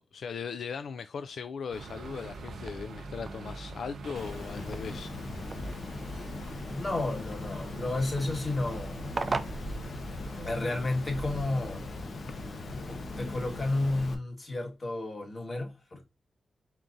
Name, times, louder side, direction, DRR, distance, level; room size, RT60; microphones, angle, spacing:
voice 1, 0.0-5.1, left 6 dB, 80° left, 0.3 m, -38 dB
sound 1, 1.7-11.4, right 3 dB, 85° right, 0.7 m, -43 dB
sound 2, 1.9-10.6, right 3 dB, 40° right, 0.5 m, -42 dB
Water, 4.1-14.1, left 2 dB, 65° left, 0.9 m, -40 dB
voice 2, 6.7-9.1 10.4-11.9 12.7-16.0, left 2 dB, 40° left, 1.5 m, -32 dB
4.4 x 3.7 x 2.6 m
cardioid pair, 85°, 0 cm